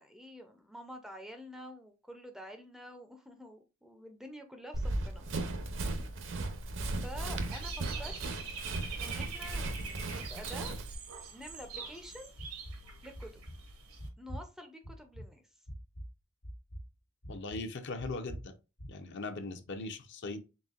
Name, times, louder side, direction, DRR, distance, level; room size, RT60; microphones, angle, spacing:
voice 1, 0.0-5.3 7.0-8.2 9.0-10.7 11.3-12.3 13.0-13.4 14.2-15.4, equal, ahead, 0.4 m, -48 dB
Run, 4.7-10.9, right 2 dB, 60° right, 0.6 m, -36 dB
Dog / Bird, 7.1-14.1, right 5 dB, 85° right, 1.1 m, -45 dB
sound 1, 12.4-12.8 13.1-13.6 14.0-14.5 14.8-15.3 15.7-16.1 16.4-16.9 17.2-17.6 18.0-18.5 18.8-18.9, equal, 90° left, 1.4 m, -44 dB
voice 2, 17.3-18.5 18.9-20.4, left 3 dB, 55° left, 0.6 m, -39 dB
4.1 x 3.6 x 2.4 m
head